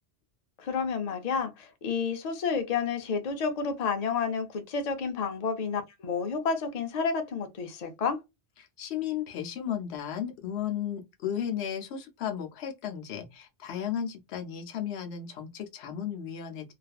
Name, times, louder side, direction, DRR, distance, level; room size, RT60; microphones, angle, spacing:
voice 1, 0.6-8.2, left 5 dB, 50° left, 0.5 m, -30 dB
voice 2, 8.6-16.7, left 9 dB, 75° left, 0.9 m, -34 dB
2.5 x 2.3 x 2.3 m
omnidirectional pair, 1.1 m